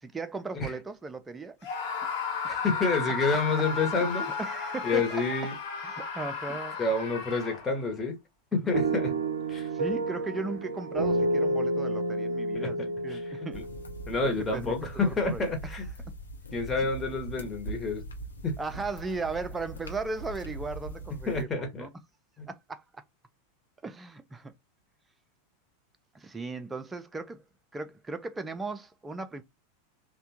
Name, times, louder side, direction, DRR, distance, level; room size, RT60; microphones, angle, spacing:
voice 1, 0.0-1.6 4.0-5.2 5.8-6.8 9.7-13.6 14.2-14.8 15.0-15.7 16.8-16.9 18.6-21.9 22.5-23.0 23.8-24.5 26.1-27.4 27.7-29.4, right 3 dB, 15° right, 0.5 m, -37 dB
Screaming, 1.6-7.9, left 5 dB, 50° left, 1.2 m, -34 dB
voice 2, 2.5-4.3 4.8-5.5 6.8-8.2 8.5-9.1 9.5-9.7 12.5-13.2 13.5-13.6 14.1-15.8 16.5-18.0 18.4-18.5 21.3-21.9, left 3 dB, 20° left, 1.0 m, -29 dB
sound 1, 8.7-14.8, right 2 dB, 70° right, 0.5 m, -30 dB
sound 2, 13.5-21.4, right 1 dB, 75° left, 0.7 m, -41 dB
3.3 x 2.2 x 2.8 m
figure-of-eight pair, 85°, 0 cm